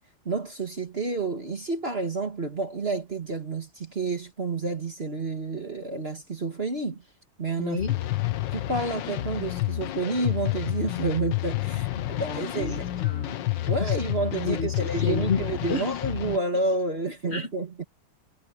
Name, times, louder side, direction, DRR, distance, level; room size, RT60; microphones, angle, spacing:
voice 1, 0.3-7.0 7.4-7.8 8.5-11.9 12.2-12.9 13.7-17.8, right 3 dB, 30° right, 1.9 m, -29 dB
voice 2, 7.6-8.0 12.0-13.4 13.8-13.9 14.4-15.8 17.3-17.5, left 5 dB, 35° left, 1.8 m, -31 dB
sound 1, 7.8-16.4, left 15 dB, 65° left, 1.4 m, -29 dB
omnidirectional pair, 2.3 m